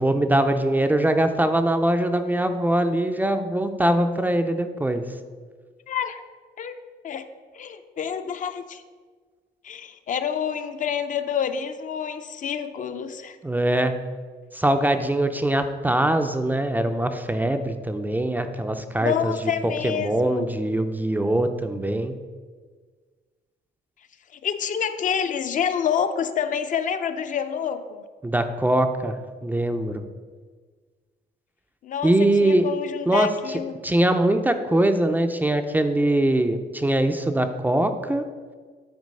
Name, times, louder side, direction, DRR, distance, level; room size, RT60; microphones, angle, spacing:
voice 1, 0.0-5.0 13.4-14.0 14.5-19.3 19.8-22.1 28.2-29.2 29.4-30.0 32.0-32.7 33.1-33.3 33.8-38.2, right 1 dB, 10° right, 7 dB, 0.4 m, -22 dB
voice 2, 5.9-6.2 6.6-6.7 7.0-7.3 7.5-8.8 9.6-13.4 19.0-20.5 24.3-28.0 31.8-33.8, left 8 dB, 50° left, 10 dB, 0.5 m, -28 dB
9.4 x 4.5 x 5.3 m, 1.5 s
cardioid pair, 150°, 18 cm